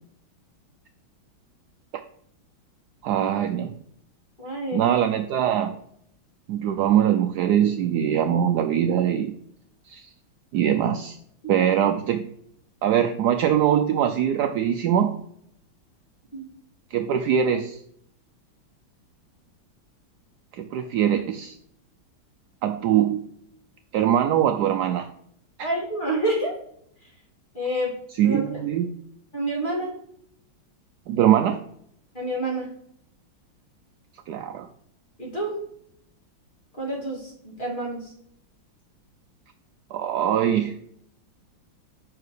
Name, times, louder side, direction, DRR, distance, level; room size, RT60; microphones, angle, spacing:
voice 1, 3.0-3.7 4.7-5.7 6.5-9.3 9.9-10.1 10.5-11.2 11.5-12.3 12.8-15.2 16.9-17.8 20.5-21.5 22.6-23.2 23.9-25.1 25.6-25.7 28.1-28.9 31.1-31.6 34.3-34.7 39.9-40.7, right 10 dB, 85° right, 7 dB, 0.9 m, -22 dB
voice 2, 4.4-5.0 16.3-16.5 25.6-26.6 27.5-27.9 28.2-28.6 29.3-29.9 32.1-32.7 35.2-35.6 36.8-38.1, right 1 dB, 25° left, -3 dB, 2.4 m, -28 dB
5.7 x 4.7 x 6.4 m, 0.69 s
omnidirectional pair, 2.3 m